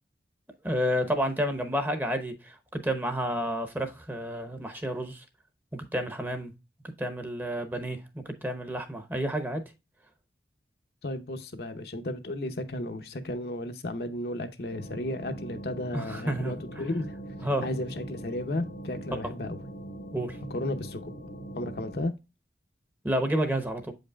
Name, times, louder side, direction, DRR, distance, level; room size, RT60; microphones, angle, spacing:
voice 1, 0.6-5.2 5.7-6.5 7.0-8.0 8.2-9.6 15.9-16.6 17.4-17.7 20.1-20.4 23.0-23.9, equal, 10° right, 0.8 m, -30 dB
voice 2, 11.0-17.1 17.6-19.6 20.5-21.1 21.5-22.1, left 1 dB, 60° left, 0.8 m, -34 dB
sound 1, 14.7-22.0, right 1 dB, 75° left, 1.2 m, -42 dB
7.8 x 5.3 x 2.3 m
head